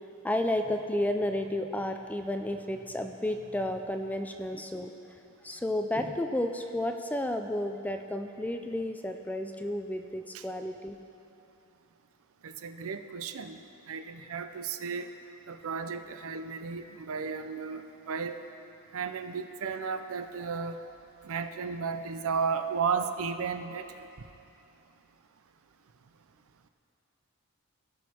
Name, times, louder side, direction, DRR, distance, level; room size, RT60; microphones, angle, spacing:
voice 1, 0.2-4.9 5.4-11.0, left 1 dB, 5° left, 6 dB, 0.4 m, -32 dB
voice 2, 12.4-13.6 13.9-15.1 15.5-18.4 18.9-20.8 21.2-24.1, right 5 dB, 65° right, 8 dB, 0.5 m, -34 dB
17.5 x 6.3 x 4.3 m, 2.8 s
head